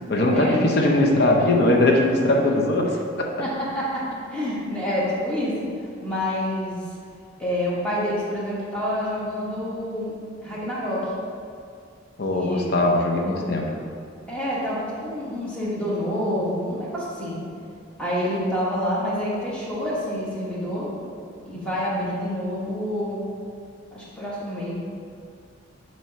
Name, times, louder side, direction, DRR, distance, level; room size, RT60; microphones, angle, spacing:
voice 1, 0.1-3.4 12.2-13.6, left 1 dB, 60° left, 0 dB, 0.7 m, -20 dB
voice 2, 3.4-5.5 6.0-6.8 7.4-10.1 10.4-11.1 12.3-12.8 13.1-13.5 14.3-17.3 18.0-20.9 21.4-23.2 23.9-24.7, equal, 5° left, -8 dB, 1.5 m, -27 dB
7.2 x 3.0 x 5.8 m, 2.2 s
head